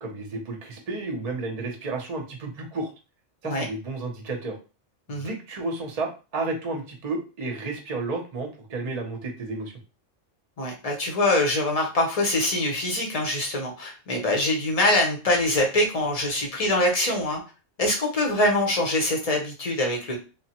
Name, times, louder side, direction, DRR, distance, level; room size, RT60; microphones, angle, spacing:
voice 1, 0.0-2.9 3.4-4.6 5.1-9.7, right 3 dB, 40° right, 2 dB, 0.6 m, -32 dB
voice 2, 10.6-17.4 17.8-20.2, left 1 dB, 35° left, 1 dB, 0.7 m, -24 dB
3.2 x 2.1 x 2.9 m, 0.32 s
omnidirectional pair, 1.3 m